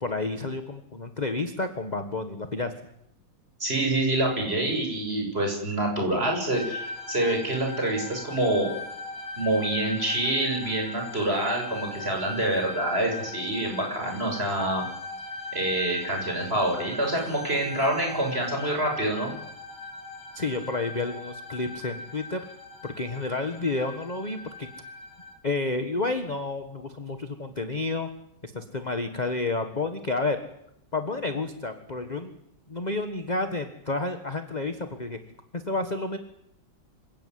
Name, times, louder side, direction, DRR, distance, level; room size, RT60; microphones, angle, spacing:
voice 1, 0.0-2.7 20.3-22.4 22.8-24.7 25.4-28.1 28.4-30.4 30.9-32.3 32.7-35.2 35.5-36.2, left 3 dB, 25° left, 7 dB, 1.4 m, -30 dB
voice 2, 3.6-8.7 9.4-14.9 15.5-19.3, right 1 dB, 30° right, 1 dB, 7.0 m, -26 dB
sound 1, 6.5-25.3, left 3 dB, 60° left, 5.2 m, -39 dB
27.0 x 16.5 x 9.6 m, 0.79 s
omnidirectional pair, 2.2 m